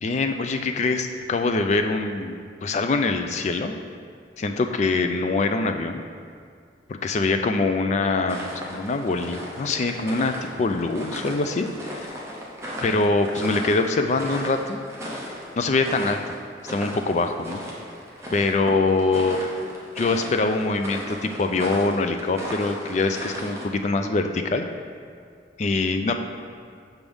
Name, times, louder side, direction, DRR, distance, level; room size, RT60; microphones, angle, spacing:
voice 1, 0.0-3.7 4.4-6.0 6.9-12.1 12.8-14.8 15.6-16.2 16.6-17.6 18.3-19.5 20.0-24.7 25.6-26.1, left 3 dB, 40° left, 6 dB, 0.3 m, -24 dB
sound 1, 8.3-23.7, equal, 15° right, 0.6 m, -36 dB
6.0 x 3.4 x 5.4 m, 2.2 s
head